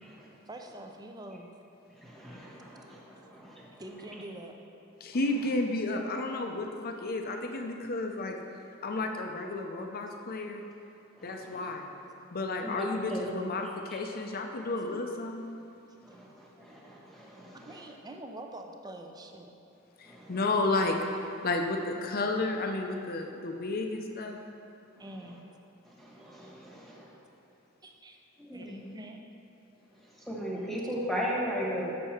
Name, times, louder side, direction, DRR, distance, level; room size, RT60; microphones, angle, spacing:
voice 1, 0.5-1.5 3.2-3.3 3.8-4.6 14.8-15.0 17.7-19.5 25.0-25.4 27.8-28.2 28.5-29.2, right 1 dB, 20° right, 3 dB, 0.5 m, -45 dB
voice 2, 2.0-3.8 11.2-11.7 12.6-13.3 13.9-14.0 16.0-17.8 20.1-20.4 25.0-25.1 25.8-27.1 28.4-28.9 30.2-31.9, equal, ahead, -5 dB, 1.3 m, -37 dB
voice 3, 5.0-8.4 8.8-10.6 11.2-11.9 12.3-15.5 20.0-21.0 21.4-24.4, left 2 dB, 45° left, 3 dB, 0.6 m, -32 dB
6.8 x 6.4 x 4.4 m, 2.9 s
head